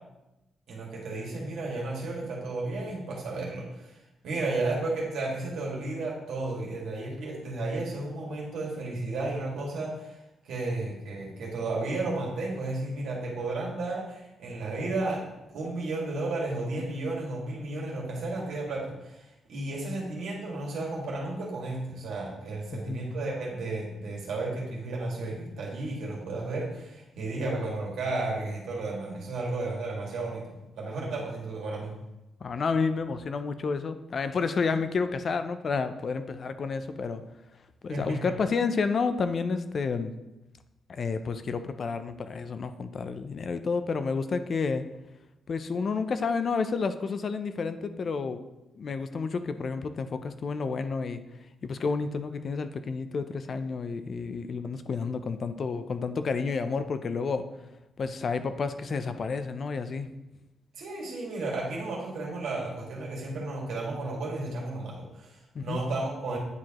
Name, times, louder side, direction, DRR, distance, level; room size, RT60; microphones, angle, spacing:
voice 1, 0.7-4.0 4.2-10.2 10.4-31.9 37.9-38.3 60.7-66.4, right 2 dB, 85° right, -2 dB, 1.9 m, -33 dB
voice 2, 22.7-23.0 32.4-37.2 37.8-40.1 40.9-44.8 45.5-48.4 48.8-51.2 51.6-57.5 58.0-60.1 65.5-65.8, left 4 dB, 40° left, 10 dB, 0.4 m, -30 dB
9.5 x 4.6 x 2.9 m, 0.96 s
wide cardioid pair, 170°, 0 cm